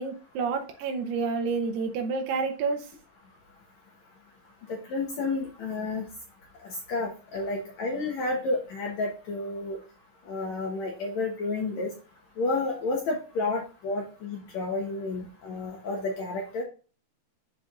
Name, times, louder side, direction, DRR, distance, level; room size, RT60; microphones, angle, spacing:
voice 1, 0.0-2.8, right 4 dB, 85° right, 3 dB, 2.9 m, -29 dB
voice 2, 4.9-6.0 6.9-9.8 10.3-11.9 12.4-16.6, left 3 dB, 65° left, 0 dB, 1.8 m, -30 dB
12.0 x 4.4 x 2.5 m, 0.35 s
omnidirectional pair, 4.7 m